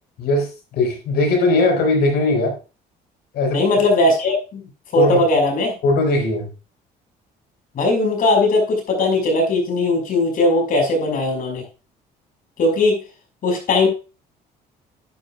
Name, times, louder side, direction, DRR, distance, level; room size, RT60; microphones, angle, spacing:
voice 1, 0.7-2.5 3.3-3.6 5.0-5.2 5.8-6.5, left 2 dB, 75° left, 3 dB, 5.2 m, -18 dB
voice 2, 3.5-4.6 4.9-5.7 7.7-11.6 12.6-13.0 13.4-13.9, left 2 dB, 55° left, 3 dB, 5.6 m, -18 dB
12.0 x 10.0 x 2.4 m, 0.32 s
cardioid pair, 110°, 17 cm